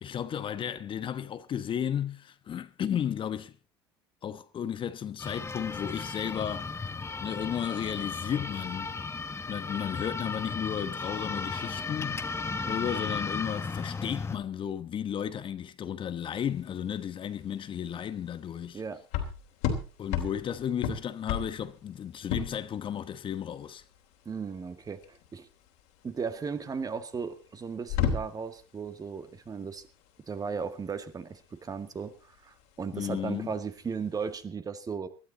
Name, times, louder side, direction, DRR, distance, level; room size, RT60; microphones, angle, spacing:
voice 1, 0.0-3.5 4.2-6.7 7.2-9.0 9.5-12.3 12.7-18.8 20.0-23.8 32.9-33.5, left 9 dB, 40° left, 1.0 m, -34 dB
sound 1, 5.2-14.4, left 4 dB, 20° left, 1.4 m, -35 dB
sound 2, 16.2-34.4, left 7 dB, 70° left, 3.3 m, -36 dB
voice 2, 24.3-25.5 26.0-29.8 30.3-35.1, right 5 dB, 30° right, 1.9 m, -36 dB
19.5 x 12.5 x 4.1 m
hypercardioid pair, 75°, 13 cm